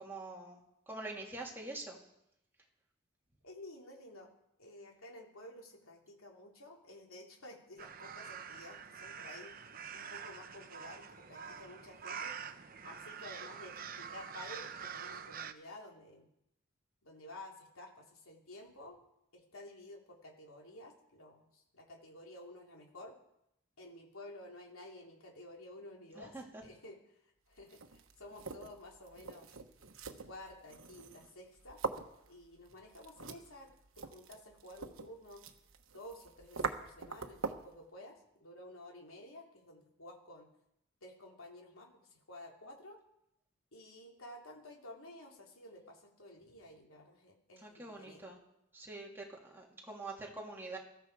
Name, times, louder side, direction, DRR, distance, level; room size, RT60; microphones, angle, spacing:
voice 1, 0.0-2.0 26.1-26.6 47.6-48.4 48.7-50.8, right 2 dB, 10° right, -2 dB, 2.9 m, -45 dB
voice 2, 3.4-4.3 4.6-9.5 9.9-12.4 12.8-16.3 17.0-19.0 19.3-23.2 23.8-26.3 26.6-29.5 30.1-31.8 32.3-35.4 35.9-40.5 41.0-43.0 43.7-48.2, left 1 dB, 85° left, 1 dB, 3.2 m, -52 dB
sound 1, 7.8-15.5, right 7 dB, 45° right, 0.9 m, -46 dB
sound 2, 27.6-37.8, right 4 dB, 75° right, 1.2 m, -44 dB
21.5 x 14.0 x 4.8 m, 0.81 s
head